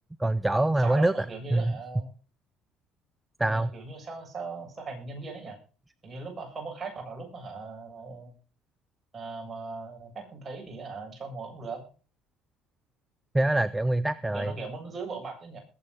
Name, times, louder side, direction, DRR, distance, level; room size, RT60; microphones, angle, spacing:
voice 1, 0.2-1.3 1.5-1.8 3.4-3.7 13.3-14.6, right 1 dB, 10° right, 15 dB, 0.7 m, -25 dB
voice 2, 0.8-2.1 3.5-5.6 6.0-8.3 9.1-11.9 14.3-15.6, right 4 dB, 30° right, 1 dB, 7.8 m, -39 dB
21.0 x 8.9 x 3.9 m, 0.38 s
cardioid pair, 100°, 0 cm